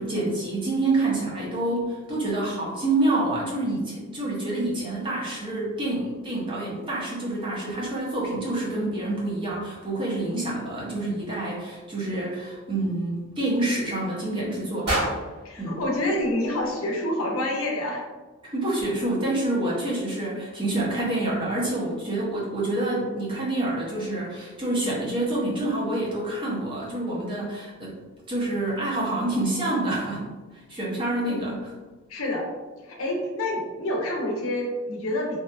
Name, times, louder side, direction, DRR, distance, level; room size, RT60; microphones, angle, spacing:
voice 1, 0.0-15.0 15.6-15.8 18.4-28.0 28.3-30.3 30.5-31.7, right 2 dB, 25° right, -5 dB, 0.5 m, -27 dB
sound 1, 14.8-17.0, right 1 dB, 50° right, 1.5 m, -31 dB
voice 2, 15.4-18.0 31.3-31.5 32.1-32.5 32.9-35.4, left 1 dB, 90° left, 0 dB, 0.6 m, -27 dB
2.7 x 2.2 x 2.3 m, 1.3 s
head